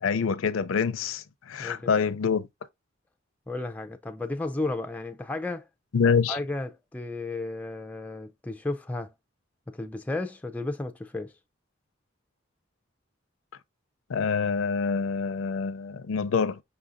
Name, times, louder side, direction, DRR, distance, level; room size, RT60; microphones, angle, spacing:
voice 1, 0.0-2.5 5.9-6.4 14.1-16.6, left 5 dB, 85° left, 0.5 m, -26 dB
voice 2, 1.6-1.9 3.5-5.7 6.3-9.1 9.7-11.3, left 2 dB, 5° left, 0.3 m, -33 dB
5.5 x 3.9 x 2.5 m
head